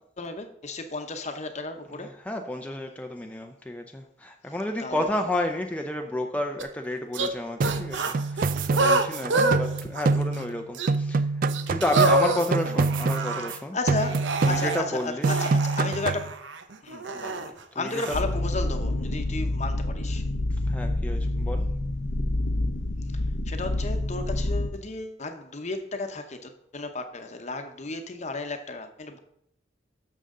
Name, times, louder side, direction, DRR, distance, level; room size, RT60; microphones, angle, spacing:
voice 1, 0.2-2.1 4.8-5.2 13.7-16.4 16.8-20.2 23.4-29.2, left 3 dB, 40° left, 7 dB, 0.9 m, -34 dB
voice 2, 1.9-13.8 14.4-15.6 17.7-18.2 20.5-21.6, left 1 dB, 10° left, 3 dB, 0.5 m, -31 dB
sound 1, 6.6-6.7 7.1-7.3 7.6-9.6 9.9-10.4 10.7-10.9 11.5-13.5 14.0-14.8 15.2-17.5 17.9-18.2, right 3 dB, 85° right, 0.8 m, -27 dB
sound 2, 7.6-10.6 10.9-13.6 13.9-15.0 15.2-16.3, right 3 dB, 50° right, 0.3 m, -26 dB
sound 3, 18.1-24.7, left 1 dB, 85° left, 0.8 m, -28 dB
12.0 x 6.8 x 3.8 m, 0.78 s
head